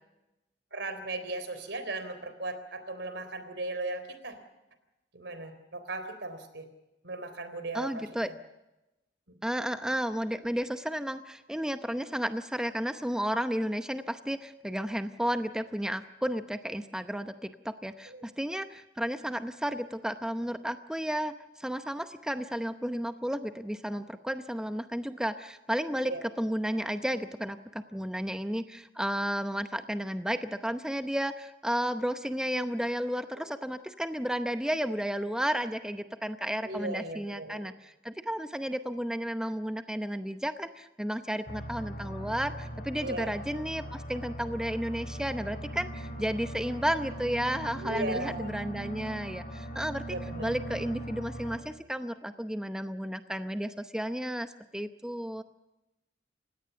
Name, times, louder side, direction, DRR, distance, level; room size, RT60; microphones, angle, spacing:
voice 1, 0.7-4.4 5.1-6.7 7.0-8.1 18.1-18.2 26.1-26.2 36.6-37.7 43.0-43.3 47.8-48.5 50.1-50.5, right 2 dB, 75° right, 10 dB, 3.7 m, -37 dB
voice 2, 7.7-8.3 9.4-55.4, equal, 5° right, 8 dB, 0.8 m, -33 dB
sound 1, 41.5-51.6, right 1 dB, 45° left, 4.1 m, -40 dB
29.5 x 17.0 x 6.9 m, 0.97 s
head